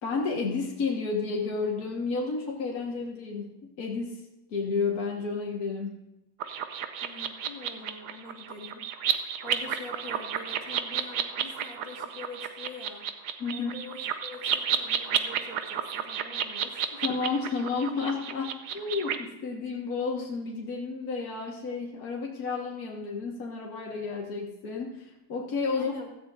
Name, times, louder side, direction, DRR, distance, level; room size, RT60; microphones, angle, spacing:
voice 1, 0.0-4.2 4.5-6.0 13.4-13.7 17.0-25.9, left 4 dB, 55° left, -2 dB, 2.0 m, -31 dB
sound 1, 6.4-19.2, right 8 dB, 65° right, 1.3 m, -32 dB
voice 2, 7.0-8.8 9.2-13.0 13.5-17.0 25.7-26.1, left 3 dB, 80° left, 0 dB, 2.9 m, -45 dB
16.0 x 13.5 x 2.6 m, 0.92 s
omnidirectional pair, 2.0 m